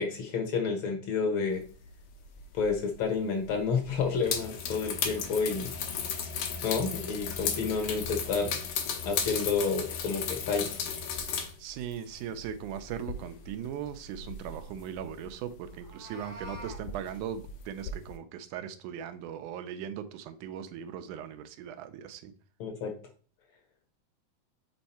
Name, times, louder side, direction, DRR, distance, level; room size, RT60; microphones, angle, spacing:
voice 1, 0.0-1.6 2.5-5.7 6.6-8.6 9.0-10.7 22.6-22.9, left 5 dB, 65° left, 4 dB, 1.3 m, -30 dB
sound 1, 2.4-2.7 3.0-3.1 3.9-11.6 11.8-15.3 15.7-15.9 16.2-18.1, left 6 dB, 85° left, 2.4 m, -35 dB
voice 2, 11.6-22.3, right 9 dB, 90° right, 9 dB, 2.1 m, -39 dB
Meow, 15.7-16.8, equal, 50° right, 1.0 m, -45 dB
5.6 x 4.4 x 4.1 m, 0.42 s
omnidirectional pair, 3.5 m